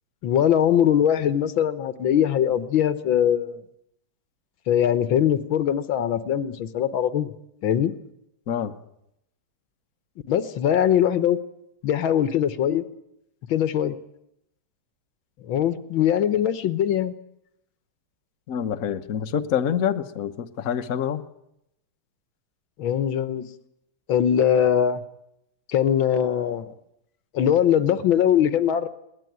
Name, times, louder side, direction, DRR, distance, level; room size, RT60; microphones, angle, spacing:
voice 1, 0.2-3.6 4.7-7.3 7.6-7.9 10.3-11.4 11.8-12.8 13.5-14.0 15.4-17.1 22.8-23.5 24.1-25.0 25.7-26.7 27.3-28.9, left 9 dB, 70° left, 13 dB, 1.8 m, -21 dB
voice 2, 18.5-21.2, left 8 dB, 50° left, 8 dB, 1.2 m, -26 dB
21.0 x 19.0 x 9.4 m, 0.81 s
omnidirectional pair, 2.3 m